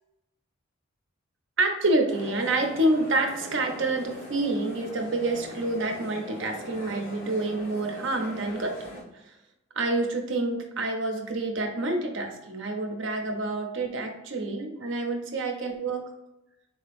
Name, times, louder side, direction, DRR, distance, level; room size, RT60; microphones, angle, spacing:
voice 1, 1.6-8.8 9.8-16.0, right 2 dB, 60° right, 3 dB, 0.6 m, -28 dB
sound 1, 2.1-9.0, left 1 dB, 40° left, 1.2 m, -41 dB
3.9 x 2.8 x 3.4 m, 0.91 s
head